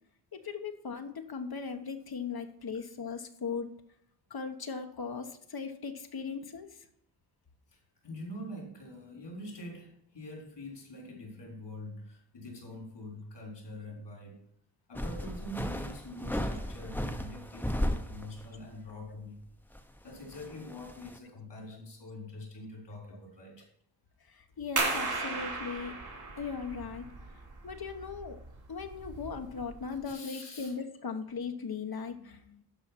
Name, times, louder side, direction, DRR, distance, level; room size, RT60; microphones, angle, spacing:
voice 1, 0.3-3.7 4.3-6.8 24.3-25.9 26.4-27.0 27.6-28.4 28.7-32.6, left 5 dB, 60° left, 6 dB, 1.2 m, -38 dB
voice 2, 7.7-14.4 14.9-19.4 20.0-23.7 30.0-30.7, left 1 dB, 85° left, -1 dB, 4.0 m, -45 dB
sound 1, 15.0-18.6 18.9-19.0 19.6-21.2, equal, 5° left, 0.9 m, -35 dB
sound 2, 24.8-30.1, right 3 dB, 65° right, 3.6 m, -36 dB
12.0 x 5.0 x 5.8 m, 0.71 s
wide cardioid pair, 70°, 41 cm